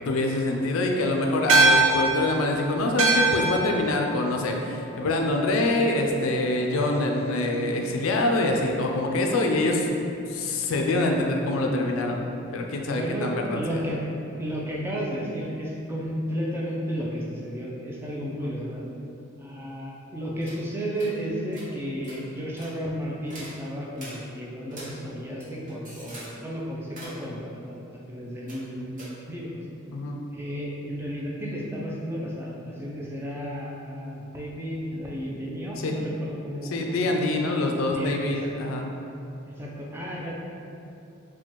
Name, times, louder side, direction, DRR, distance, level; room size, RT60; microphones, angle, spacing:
voice 1, 0.0-12.2 12.5-13.8 18.4-18.6 29.9-30.2 35.8-36.0 36.7-38.9, left 2 dB, 75° left, 2 dB, 0.4 m, -25 dB
sound 1, 1.5-6.2, right 3 dB, 75° right, 0.4 m, -24 dB
voice 2, 6.7-7.1 12.9-14.1 14.4-18.8 19.4-27.8 28.1-29.6 30.3-37.0 37.8-38.7 39.4-40.3, equal, 10° right, -4 dB, 0.4 m, -33 dB
sound 2, 20.4-20.6 20.9-21.1 21.5-21.7 22.0-22.2 22.6-22.7 23.3-23.6 23.9-24.2 24.7-24.9 25.3-26.3 26.8-27.2 28.5-28.7 29.0-29.1, right 1 dB, 40° right, 1.0 m, -43 dB
4.1 x 2.2 x 3.0 m, 2.7 s
head